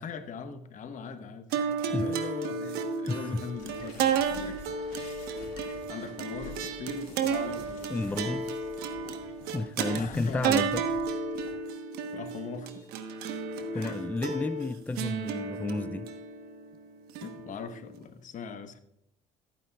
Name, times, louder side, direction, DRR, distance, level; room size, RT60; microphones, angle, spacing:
voice 1, 0.0-4.6 5.9-8.3 9.9-10.7 12.1-12.9 13.7-14.0 17.2-18.8, left 5 dB, 55° left, 1.2 m, -41 dB
voice 2, 1.5-2.2 3.1-3.4 7.9-8.5 9.5-10.8 13.7-16.1, left 2 dB, 10° left, 0.4 m, -32 dB
sound 1, 1.5-18.0, right 6 dB, 80° right, 1.2 m, -33 dB
sound 2, 3.5-11.6, left 5 dB, 90° left, 2.8 m, -49 dB
15.5 x 9.3 x 2.4 m
supercardioid pair, 85°, 16 cm